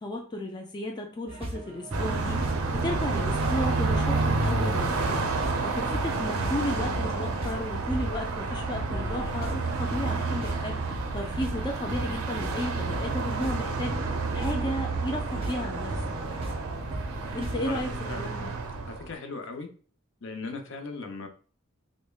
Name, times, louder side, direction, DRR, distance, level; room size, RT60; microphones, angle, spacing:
voice 1, 0.0-2.4 2.8-5.2 5.6-10.8 11.1-14.0 14.3-15.9 17.3-18.5, left 1 dB, 20° left, 2 dB, 0.3 m, -34 dB
sound 1, 1.3-17.8, right 1 dB, 25° right, 0.6 m, -37 dB
Car passing by, 1.9-19.1, right 3 dB, 90° right, 0.5 m, -30 dB
voice 2, 17.3-18.3 18.9-19.7 20.2-21.3, left 3 dB, 60° left, 5 dB, 0.6 m, -39 dB
5.1 x 2.1 x 2.3 m, 0.41 s
head